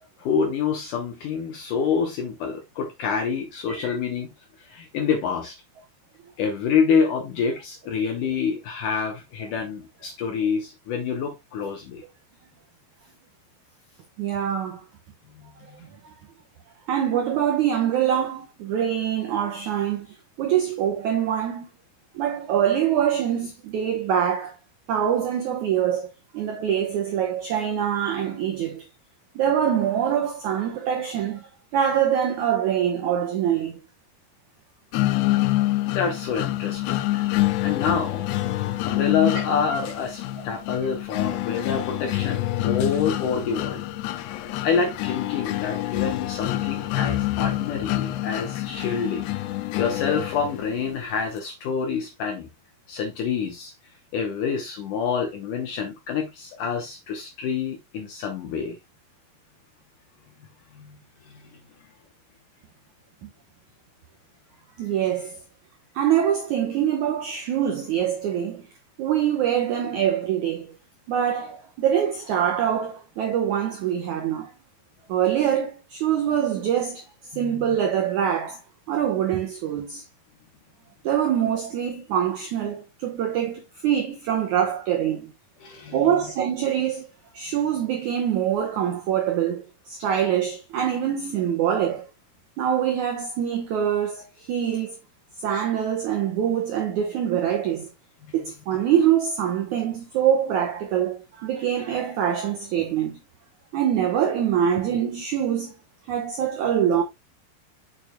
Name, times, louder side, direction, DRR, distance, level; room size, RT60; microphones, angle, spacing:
voice 1, 0.2-4.3 4.6-5.6 6.4-12.0 15.4-15.8 35.8-38.3 38.8-43.8 44.6-49.3 49.8-52.5 52.9-53.7 54.1-58.8 60.7-61.0 61.3-61.6 77.3-77.8 85.6-86.1 98.2-98.3, left 6 dB, 70° left, 2.0 m, -27 dB
voice 2, 14.2-14.9 15.8-15.9 16.9-21.7 22.1-24.5 24.9-26.1 26.3-28.9 29.4-33.8 38.7-38.8 63.2-63.3 64.8-65.4 65.9-68.7 69.0-70.7 71.1-74.5 75.1-77.1 77.4-78.6 78.9-80.1 81.0-85.3 85.9-87.1 87.3-92.1 92.6-95.0 95.4-97.9 98.3-103.2 103.7-105.7 106.1-107.0, right 9 dB, 90° right, 1.7 m, -24 dB
sound 1, 34.9-50.9, left 16 dB, 90° left, 2.8 m, -27 dB
7.2 x 6.6 x 2.3 m
omnidirectional pair, 4.9 m